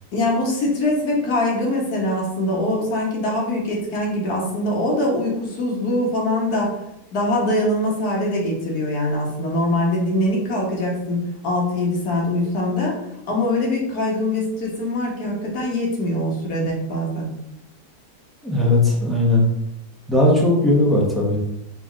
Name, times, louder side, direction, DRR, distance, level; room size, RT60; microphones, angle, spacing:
voice 1, 0.1-6.7 7.1-13.0 13.3-17.3, left 1 dB, 65° left, -2 dB, 1.6 m, -23 dB
voice 2, 18.4-19.4 20.1-21.4, left 2 dB, ahead, -5 dB, 0.7 m, -17 dB
4.1 x 3.1 x 3.7 m, 0.84 s
omnidirectional pair, 1.8 m